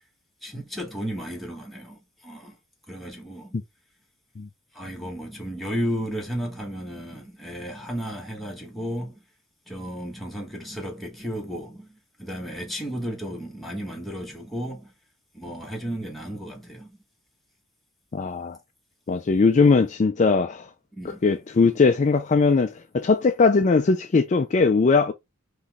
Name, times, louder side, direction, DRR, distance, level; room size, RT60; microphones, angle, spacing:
voice 1, 0.4-2.6 2.9-3.6 4.7-9.2 9.7-14.9 15.3-17.0 20.9-21.2, equal, ahead, 1.4 m, -33 dB
voice 2, 18.1-18.6 19.1-20.7 21.0-25.1, left 4 dB, 35° left, 0.4 m, -20 dB
4.1 x 3.1 x 3.6 m
head